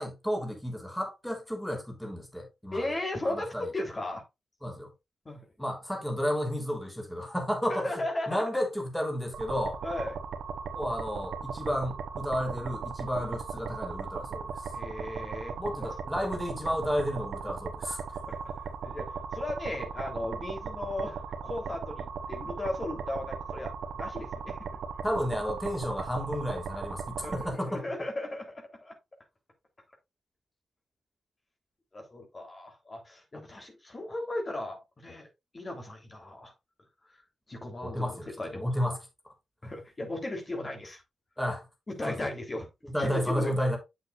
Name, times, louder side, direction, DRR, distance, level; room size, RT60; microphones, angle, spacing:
voice 1, 0.0-2.9 3.2-3.7 4.6-4.9 5.6-9.8 10.7-14.7 15.6-18.2 25.0-27.8 37.8-38.3 38.5-39.0 39.2-39.3 39.6-39.7 41.4-41.7 42.0-42.2 42.8-43.8, equal, 5° left, 3.3 m, -32 dB
voice 2, 2.7-4.2 5.3-5.5 7.7-8.4 9.8-10.1 13.1-13.3 14.7-15.9 18.3-18.4 18.8-24.7 27.2-28.9 31.9-35.3 35.5-36.5 37.5-38.0 38.4-38.7 39.6-41.0 41.9-42.7 43.0-43.5, left 1 dB, 40° left, 3.4 m, -36 dB
sound 1, 9.3-27.5, right 5 dB, 80° right, 1.2 m, -38 dB
8.1 x 7.7 x 2.5 m
supercardioid pair, 45°, 0 cm